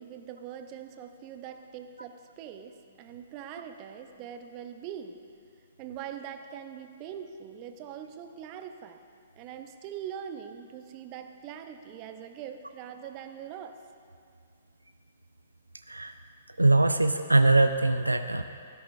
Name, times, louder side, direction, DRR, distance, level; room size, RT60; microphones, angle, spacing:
voice 1, 0.0-5.2 5.8-9.0 9.4-13.7, right 9 dB, 35° right, 7 dB, 0.9 m, -42 dB
voice 2, 16.6-18.4, right 2 dB, 90° right, 9 dB, 0.5 m, -22 dB
17.0 x 13.5 x 2.7 m, 2.3 s
figure-of-eight pair, 120°, 0 cm